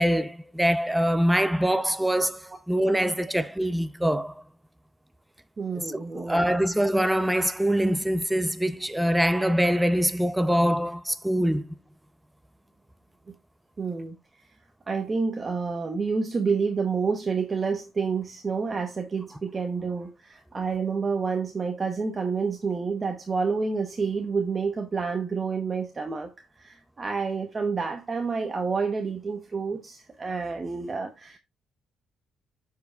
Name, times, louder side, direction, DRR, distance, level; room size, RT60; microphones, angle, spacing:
voice 1, 0.0-4.4 6.1-11.8, equal, 5° right, 0.6 m, -24 dB
voice 2, 5.6-6.6 13.8-14.1 14.9-31.4, right 5 dB, 35° right, 0.9 m, -29 dB
12.0 x 4.7 x 2.4 m
cardioid pair, 90°, 0 cm